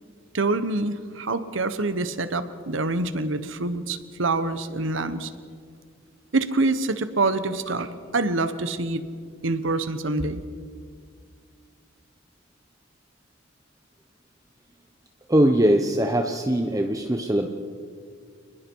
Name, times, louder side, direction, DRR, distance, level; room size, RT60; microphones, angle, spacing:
voice 1, 0.3-5.3 6.3-9.0 9.4-10.4, right 2 dB, 70° right, 12 dB, 1.2 m, -26 dB
voice 2, 15.3-17.5, right 1 dB, 15° right, 4 dB, 0.9 m, -21 dB
28.5 x 20.5 x 4.7 m, 2.1 s
head